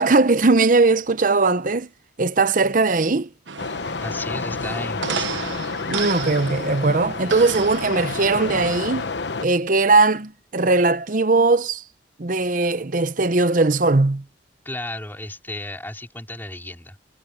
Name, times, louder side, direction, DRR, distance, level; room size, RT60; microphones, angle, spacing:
voice 1, 0.0-1.9 2.2-3.3 5.9-9.1 9.4-11.8 12.2-14.2, right 3 dB, 45° right, 0.9 m, -19 dB
sound 1, 3.5-8.7, right 7 dB, 80° right, 1.2 m, -33 dB
sound 2, 3.6-9.5, left 4 dB, 70° left, 1.0 m, -29 dB
voice 2, 4.0-5.4 14.6-17.0, left 1 dB, 10° left, 2.9 m, -33 dB
head